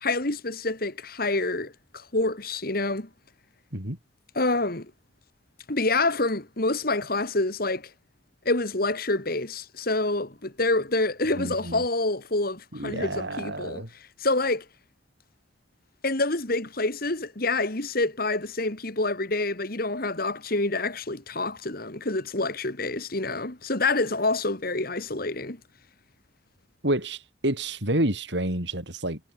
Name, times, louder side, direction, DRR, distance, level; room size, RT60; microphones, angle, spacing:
voice 1, 0.0-3.1 4.3-4.9 5.7-7.9 8.5-13.8 14.2-14.6 16.0-25.6, left 2 dB, 50° left, 2.3 m, -27 dB
voice 2, 11.4-11.8 12.7-13.9 26.8-29.2, right 1 dB, 60° right, 6.2 m, -29 dB
head